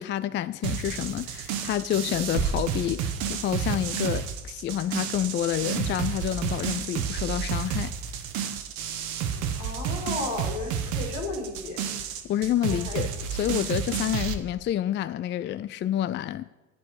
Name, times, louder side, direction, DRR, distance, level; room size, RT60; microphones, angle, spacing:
voice 1, 0.0-7.9 12.3-16.5, left 11 dB, 30° left, 0.4 m, -28 dB
sound 1, 0.6-14.3, right 8 dB, 65° right, 1.2 m, -31 dB
sound 2, 2.4-4.4, right 4 dB, 15° right, 1.0 m, -34 dB
voice 2, 9.3-11.8 12.7-13.1, left 3 dB, 80° left, 2.4 m, -34 dB
10.5 x 8.2 x 4.9 m
hypercardioid pair, 65°, 39 cm